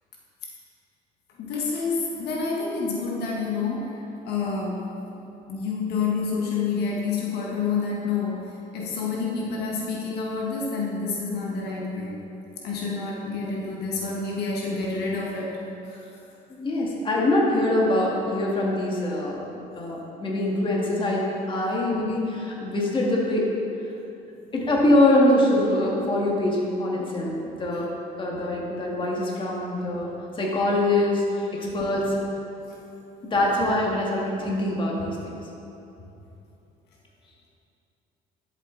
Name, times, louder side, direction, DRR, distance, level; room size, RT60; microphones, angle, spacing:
voice 1, 1.4-5.0 5.5-12.2 12.6-15.6 15.9-16.1 31.6-31.8 32.7-32.8, left 4 dB, 75° left, -3 dB, 1.5 m, -28 dB
voice 2, 16.5-19.4 19.8-23.5 24.5-27.9 28.2-32.2 33.3-35.4, left 1 dB, 30° left, -3 dB, 1.8 m, -24 dB
11.5 x 7.7 x 3.9 m, 2.9 s
cardioid pair, 110°, 17 cm